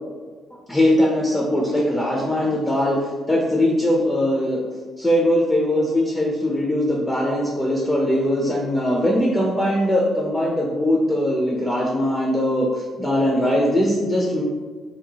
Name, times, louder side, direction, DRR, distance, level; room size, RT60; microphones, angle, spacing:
voice 1, 0.7-4.6 5.0-14.4, left 1 dB, 10° left, -2 dB, 0.4 m, -21 dB
2.6 x 2.3 x 2.7 m, 1.5 s
cardioid pair, 90°, 0 cm